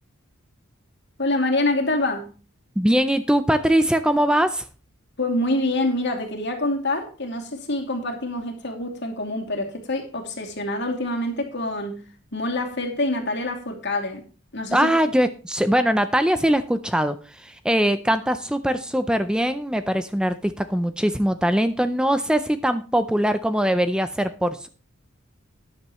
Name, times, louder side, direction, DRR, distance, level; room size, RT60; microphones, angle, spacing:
voice 1, 1.2-2.3 5.2-12.0 12.3-14.2 14.5-14.9, left 2 dB, 60° left, 3 dB, 2.6 m, -26 dB
voice 2, 2.8-4.7 14.7-24.7, equal, 5° right, 10 dB, 0.4 m, -22 dB
13.0 x 10.5 x 3.1 m, 0.36 s
head